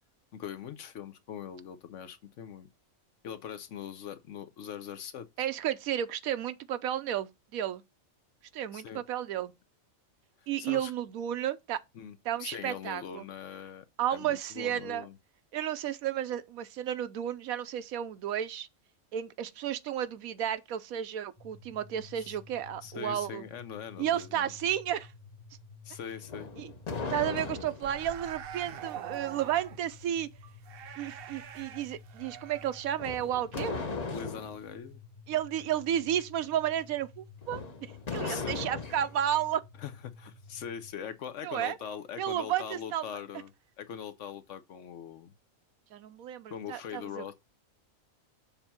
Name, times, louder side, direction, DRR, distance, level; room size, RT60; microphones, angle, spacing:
voice 1, 0.3-2.7 3.2-5.3 8.7-9.0 10.4-10.9 11.9-13.8 14.1-15.2 22.2-22.4 22.8-24.5 25.8-26.5 34.1-35.0 38.3-38.7 39.8-43.5 43.8-45.3 46.5-47.3, left 8 dB, 65° left, 1.0 m, -42 dB
voice 2, 5.4-7.8 8.5-9.5 10.5-11.8 12.3-13.2 14.0-15.1 15.5-18.7 19.1-23.4 24.0-25.1 26.6-26.7 27.1-30.3 31.0-33.8 35.3-39.6 41.4-41.8 42.2-43.0 45.9-47.2, right 10 dB, 85° right, 1.1 m, -32 dB
sound 1, 21.4-40.9, left 4 dB, 15° left, 1.1 m, -52 dB
sound 2, 26.2-28.0 33.0-34.6 37.4-39.1, left 4 dB, 35° left, 0.8 m, -37 dB
sound 3, 27.8-34.4 34.7-34.9, right 10 dB, 65° right, 0.6 m, -45 dB
7.0 x 2.9 x 5.8 m
omnidirectional pair, 1.5 m